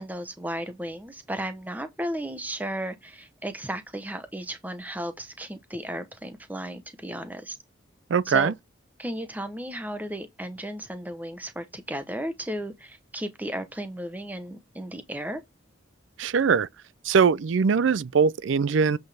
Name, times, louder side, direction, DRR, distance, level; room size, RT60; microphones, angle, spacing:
voice 1, 0.0-7.6 8.2-8.5 9.0-15.4, right 1 dB, 10° right, 0.9 m, -34 dB
voice 2, 8.1-8.5 16.2-16.7 17.0-19.0, right 6 dB, 80° right, 0.4 m, -21 dB
7.8 x 5.7 x 3.4 m
head